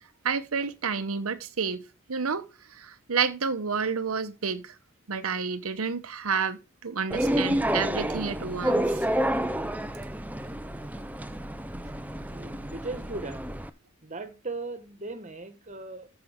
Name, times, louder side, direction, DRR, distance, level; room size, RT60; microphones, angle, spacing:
voice 1, 0.2-4.7 5.1-9.1, right 5 dB, 85° right, 0.9 m, -30 dB
sound 1, 7.1-13.7, right 1 dB, 5° right, 0.7 m, -29 dB
voice 2, 12.3-13.7 14.0-16.1, right 3 dB, 35° right, 1.6 m, -38 dB
14.0 x 6.1 x 3.6 m
head